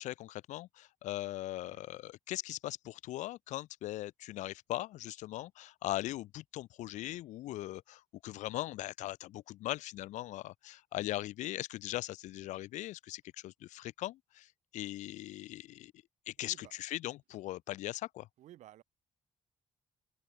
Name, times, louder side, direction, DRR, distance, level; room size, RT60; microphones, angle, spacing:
voice 1, 0.0-15.9 16.3-18.3, left 16 dB, 80° left, 0.5 m, -40 dB
voice 2, 16.4-16.7 18.4-18.8, right 13 dB, 80° right, 2.0 m, -55 dB
open air
cardioid pair, 90°, 12 cm